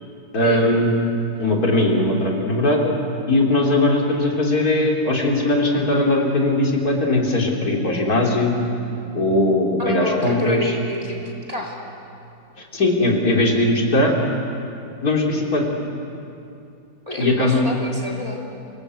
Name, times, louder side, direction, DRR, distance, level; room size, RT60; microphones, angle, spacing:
voice 1, 0.3-1.0 1.4-2.9 3.3-8.5 9.1-10.7 12.6-14.2 15.0-15.7 17.2-17.6, left 1 dB, 70° left, -1 dB, 3.4 m, -19 dB
voice 2, 9.8-11.8 17.1-18.4, left 1 dB, 25° right, -2 dB, 3.3 m, -28 dB
27.5 x 19.0 x 8.1 m, 2.6 s
omnidirectional pair, 1.7 m